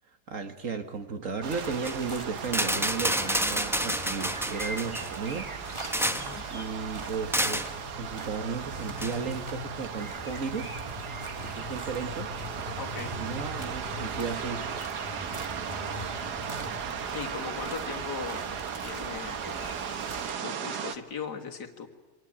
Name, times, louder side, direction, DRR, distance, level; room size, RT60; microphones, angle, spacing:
voice 1, 0.3-5.5 6.5-10.8 11.4-12.3 13.2-14.7, right 5 dB, 50° right, 8 dB, 1.9 m, -34 dB
sound 1, 1.4-20.3, equal, 20° right, 1.5 m, -41 dB
sound 2, 1.4-21.0, right 7 dB, 70° right, 1.7 m, -37 dB
sound 3, 1.7-2.0 2.4-5.2 5.7-6.4 7.3-7.7 9.0-9.2, equal, ahead, 0.7 m, -29 dB
voice 2, 6.1-6.4 12.8-13.1 17.1-18.5 18.8-19.7 20.4-21.9, left 6 dB, 75° left, 4 dB, 2.5 m, -39 dB
27.5 x 24.5 x 8.8 m, 1.2 s
omnidirectional pair, 1.8 m